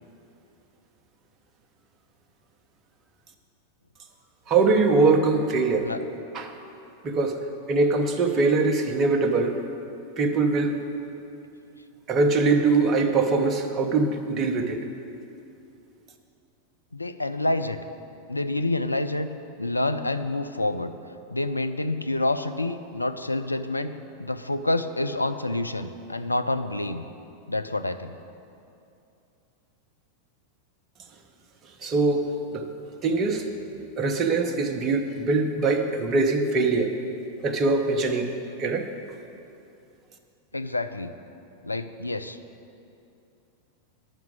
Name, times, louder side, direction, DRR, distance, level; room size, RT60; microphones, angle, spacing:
voice 1, 4.5-5.9 6.3-6.5 7.0-7.4 7.7-9.6 10.2-10.8 12.1-14.8 31.8-32.7 33.0-33.5 34.0-36.9 37.4-38.3 38.6-38.9, right 3 dB, 30° right, 6 dB, 0.9 m, -22 dB
voice 2, 16.9-17.8 18.3-19.3 19.6-20.9 21.3-23.9 24.2-27.1 27.5-28.1 40.5-41.1 41.6-42.4, left 2 dB, 85° left, 9 dB, 0.4 m, -27 dB
9.9 x 5.9 x 7.8 m, 2.7 s
figure-of-eight pair, 90°, 0 cm